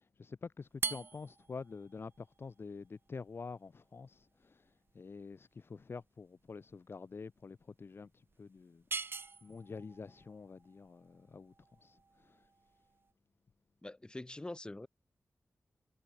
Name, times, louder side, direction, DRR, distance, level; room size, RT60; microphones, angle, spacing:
voice 1, 0.0-8.8 9.4-11.5 11.8-12.5, left 4 dB, 50° left, 3.2 m, -48 dB
sound 1, 0.7-13.1, right 4 dB, 50° right, 5.8 m, -46 dB
voice 2, 13.8-14.9, left 2 dB, 20° left, 6.2 m, -44 dB
wide cardioid pair, 115°, 5 cm